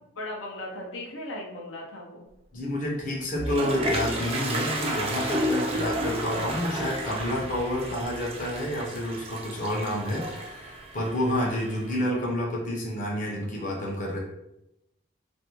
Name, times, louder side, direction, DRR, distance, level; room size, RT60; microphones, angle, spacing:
voice 1, 0.2-2.3, left 1 dB, 85° left, -2 dB, 0.5 m, -37 dB
voice 2, 2.5-14.2, left 1 dB, 40° left, -3 dB, 0.6 m, -29 dB
Toilet flush, 3.1-12.0, right 1 dB, 30° right, 0.3 m, -32 dB
2.5 x 2.1 x 2.9 m, 0.87 s
head